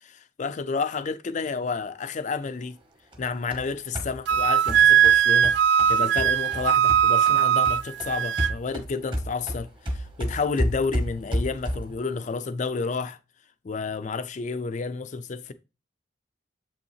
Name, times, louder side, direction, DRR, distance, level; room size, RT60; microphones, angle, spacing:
voice 1, 0.4-2.7 3.2-5.5 5.9-13.2 13.6-15.5, left 4 dB, 40° left, 0.4 m, -30 dB
sound 1, 3.1-7.4 7.6-12.0, equal, 25° right, 1.1 m, -31 dB
Wind instrument woodwind instrument, 4.3-8.5, right 9 dB, 60° right, 0.3 m, -20 dB
7.1 x 5.5 x 2.7 m
head